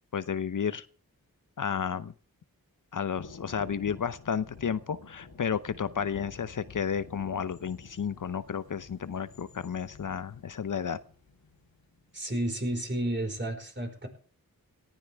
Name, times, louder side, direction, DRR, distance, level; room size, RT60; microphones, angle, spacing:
voice 1, 0.1-0.8 1.6-2.1 2.9-11.0, left 7 dB, 60° left, 14 dB, 0.7 m, -32 dB
Thunder, 3.2-12.2, left 4 dB, 90° left, 3.6 m, -50 dB
voice 2, 12.1-14.1, right 1 dB, 30° right, 4 dB, 4.8 m, -31 dB
18.0 x 15.0 x 3.5 m, 0.43 s
cardioid pair, 50°, 36 cm